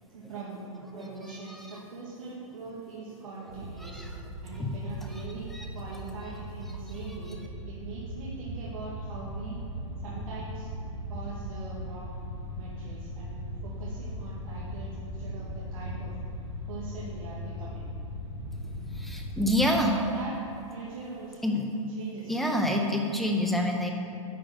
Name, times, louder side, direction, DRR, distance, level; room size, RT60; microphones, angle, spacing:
voice 1, 0.1-4.0 4.4-5.5 5.7-7.4 7.7-9.6 10.0-10.7 11.1-12.1 12.5-16.1 16.7-17.8 19.8-20.4 20.7-21.6 22.0-22.6, right 3 dB, 80° right, -7 dB, 1.8 m, -42 dB
sound 1, 3.5-19.8, equal, 60° right, 1.5 m, -38 dB
voice 2, 3.8-4.2 4.5-4.7 5.5-5.7 18.9-20.0 21.4-21.7 22.3-23.9, left 1 dB, ahead, 1 dB, 0.7 m, -27 dB
10.0 x 3.9 x 6.3 m, 2.8 s
hypercardioid pair, 140°, 17 cm